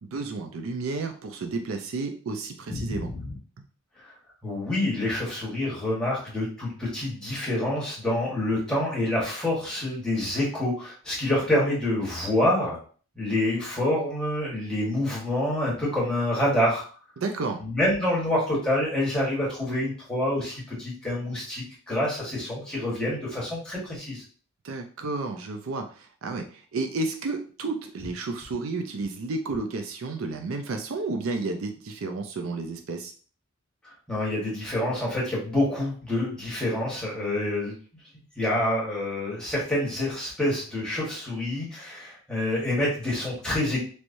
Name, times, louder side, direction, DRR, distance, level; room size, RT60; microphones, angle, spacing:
voice 1, 0.0-3.1 17.2-17.6 24.6-33.1, right 3 dB, 70° right, 5 dB, 0.4 m, -31 dB
voice 2, 2.7-3.2 4.4-12.8 13.1-16.8 17.6-24.2 34.1-37.7 38.4-43.8, left 1 dB, 5° left, -6 dB, 1.3 m, -27 dB
3.2 x 3.0 x 2.6 m, 0.41 s
head